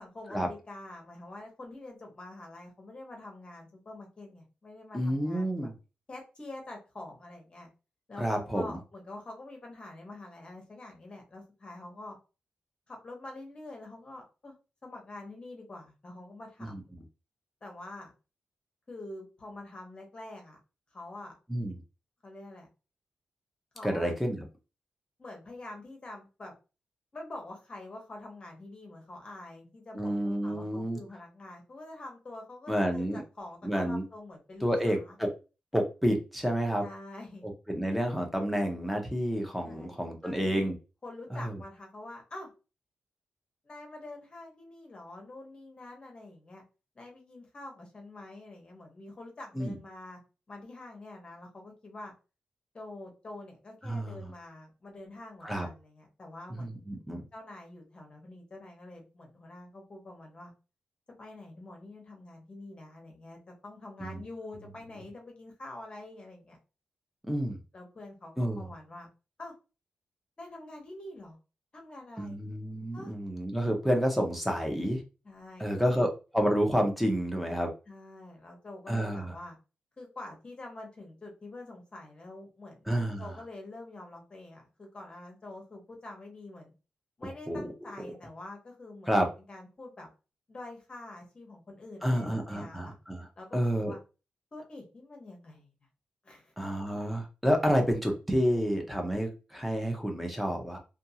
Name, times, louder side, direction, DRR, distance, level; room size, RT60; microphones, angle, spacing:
voice 1, 0.0-5.7 6.1-7.7 8.1-12.2 12.9-14.6 14.8-16.9 17.6-18.1 18.9-20.6 20.9-21.4 22.2-22.7 23.7-24.1 25.2-26.5 27.1-35.2 36.8-37.4 39.6-40.0 40.2-40.7 41.0-42.5 43.6-46.6 46.9-50.2 50.5-52.1 52.7-56.8 57.3-60.5 61.2-66.6 67.7-69.1 69.4-69.5 70.4-71.4 71.7-72.4 72.9-73.1 75.2-76.1 77.9-79.6 80.0-86.7 87.2-89.1 89.5-90.1 90.5-93.0 93.4-94.0 94.5-95.7 96.2-96.5, left 2 dB, 30° left, 1 dB, 0.9 m, -46 dB
voice 2, 4.9-5.7 8.2-8.8 16.6-16.8 21.5-21.8 23.8-24.4 29.9-31.0 32.7-33.2 33.6-34.0 34.6-35.3 35.7-36.8 37.4-40.7 41.3-41.6 49.5-49.8 53.8-54.2 55.4-55.7 56.6-57.2 64.0-64.2 67.3-67.6 68.4-68.7 72.2-75.0 75.6-76.1 76.3-77.7 78.9-79.3 82.9-83.3 87.5-87.6 89.1-89.3 92.0-93.3 93.5-93.9 96.6-100.8, equal, ahead, 2 dB, 0.6 m, -29 dB
2.5 x 2.3 x 2.7 m, 0.31 s
wide cardioid pair, 155°, 3 cm